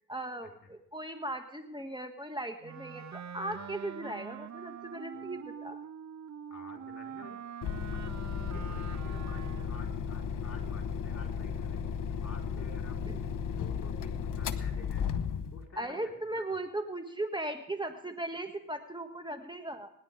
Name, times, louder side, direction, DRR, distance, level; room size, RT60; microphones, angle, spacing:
voice 1, 0.1-5.8 13.0-13.2 15.8-19.9, right 1 dB, 15° right, 6 dB, 1.6 m, -38 dB
Wind instrument woodwind instrument, 2.6-9.9, right 8 dB, 60° right, 0.7 m, -44 dB
voice 2, 6.5-7.4 7.8-11.8 12.2-13.1 13.6-15.1 15.5-16.4, left 4 dB, 50° left, 1 dB, 4.5 m, -51 dB
sound 1, 7.6-15.6, left 7 dB, 75° left, 1.0 m, -35 dB
25.5 x 10.5 x 3.7 m, 0.72 s
cardioid pair, 60°, 32 cm